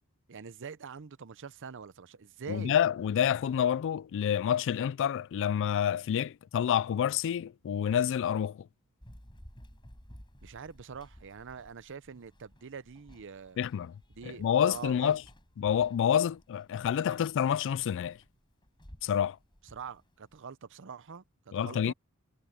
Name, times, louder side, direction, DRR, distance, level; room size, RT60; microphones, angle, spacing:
voice 1, 0.3-2.8 10.4-13.6 14.1-15.2 19.7-21.9, right 6 dB, 60° right, 0.6 m, -44 dB
voice 2, 2.5-8.7 13.6-13.9 14.2-15.2 15.6-18.2 19.0-19.4 21.5-21.9, left 9 dB, 60° left, 0.3 m, -28 dB
Run, 9.0-20.4, equal, 20° left, 4.6 m, -56 dB
head